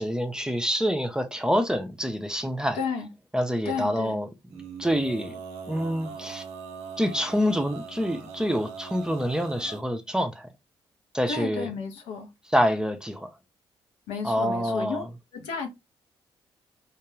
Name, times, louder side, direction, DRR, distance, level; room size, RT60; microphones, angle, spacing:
voice 1, 0.0-2.8 3.3-4.3 4.8-5.3 5.7-6.4 7.0-10.5 11.1-11.7 12.5-13.3 14.2-15.0, equal, 5° right, 0.5 m, -26 dB
voice 2, 2.7-3.1 3.6-4.2 11.3-12.3 14.1-15.0 15.3-15.7, left 5 dB, 75° left, 0.6 m, -32 dB
Male singing, 4.5-9.8, right 5 dB, 85° right, 0.5 m, -41 dB
2.3 x 2.2 x 3.1 m
hypercardioid pair, 40°, 12 cm